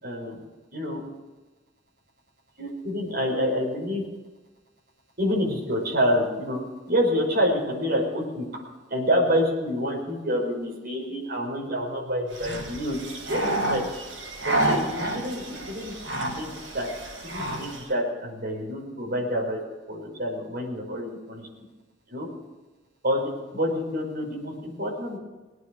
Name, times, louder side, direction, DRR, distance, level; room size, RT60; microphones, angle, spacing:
voice 1, 0.0-0.4 0.7-1.0 2.6-4.0 5.2-6.6 6.9-8.4 8.9-13.0 13.3-13.8 14.4-16.9 17.2-19.6 19.9-21.5 22.1-22.3 23.0-23.2 23.5-25.2, equal, 50° right, -2 dB, 5.4 m, -27 dB
sound 1, 12.3-17.9, right 1 dB, 75° right, 6.3 m, -30 dB
21.0 x 9.3 x 6.6 m, 1.2 s
head